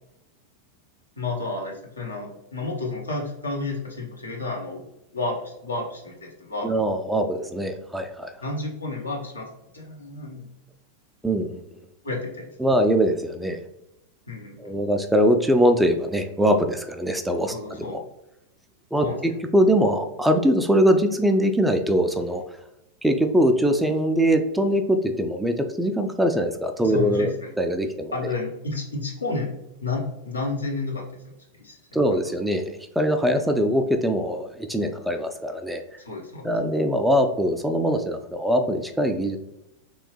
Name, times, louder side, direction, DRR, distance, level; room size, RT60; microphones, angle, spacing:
voice 1, 1.2-4.9 5.1-6.7 8.4-9.5 9.7-10.5 12.0-12.5 14.3-14.7 17.5-18.0 19.0-19.2 26.8-27.3 28.1-29.5 29.8-31.0 31.6-31.8 33.2-33.3 36.0-36.5, left 3 dB, 80° left, -2 dB, 0.9 m, -31 dB
voice 2, 6.6-8.3 11.2-11.6 12.6-13.6 14.6-18.0 18.9-22.4 23.0-28.1 31.9-35.8 36.4-39.4, equal, 5° right, 6 dB, 0.3 m, -22 dB
3.4 x 3.0 x 3.1 m, 0.85 s
figure-of-eight pair, 90°, 0 cm